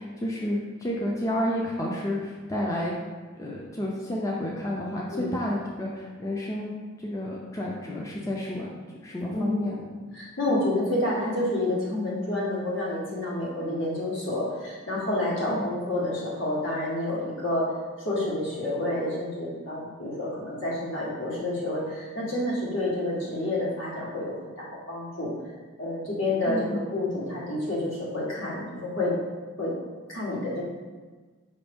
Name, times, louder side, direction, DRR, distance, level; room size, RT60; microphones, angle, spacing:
voice 1, 0.0-2.9 3.4-6.7 7.0-8.7 9.0-9.9 10.5-10.6 15.5-15.7 26.5-26.9, left 1 dB, 15° left, -3 dB, 0.3 m, -30 dB
voice 2, 9.3-9.6 10.1-17.7 18.0-25.3 25.8-29.1 29.6-29.7 30.1-30.6, left 1 dB, 75° left, -6 dB, 1.3 m, -29 dB
5.0 x 2.6 x 3.4 m, 1.4 s
head